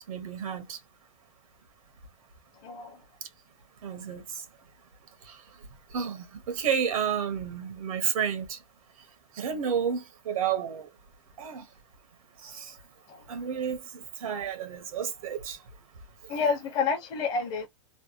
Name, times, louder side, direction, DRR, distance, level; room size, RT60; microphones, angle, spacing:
voice 1, 0.1-0.8 3.8-4.4 5.3-5.4 5.9-8.6 9.4-10.9 11.4-11.6 12.4-12.7 13.3-15.6, right 7 dB, 90° right, 1.3 m, -31 dB
voice 2, 2.6-3.0 13.1-13.2 16.3-17.7, left 5 dB, 25° left, 0.9 m, -29 dB
3.3 x 2.3 x 2.8 m
supercardioid pair, 170°, 18 cm